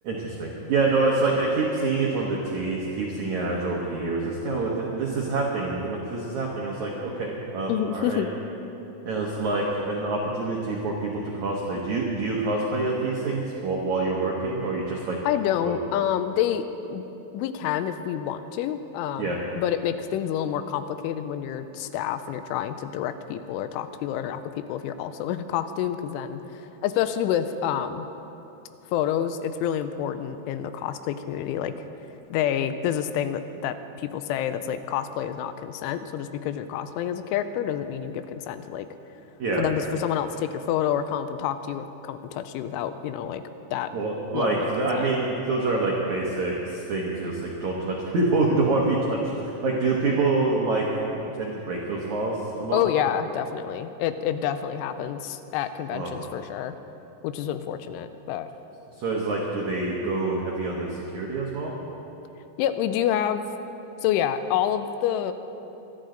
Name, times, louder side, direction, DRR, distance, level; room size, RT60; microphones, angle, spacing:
voice 1, 0.0-8.2 9.0-15.2 15.6-15.8 19.2-19.4 39.4-39.7 43.9-50.9 51.1-52.9 55.9-56.2 59.0-61.7, right 3 dB, 85° right, -2 dB, 1.6 m, -26 dB
voice 2, 7.7-8.3 15.2-16.6 16.9-17.0 17.3-28.1 28.9-31.7 32.3-38.9 39.6-43.4 43.7-43.9 44.3-45.1 52.7-56.8 57.2-58.5 62.6-63.4 64.0-65.3, left 10 dB, 85° left, 10 dB, 3.0 m, -28 dB
25.5 x 10.5 x 3.9 m, 3.0 s
omnidirectional pair, 5.5 m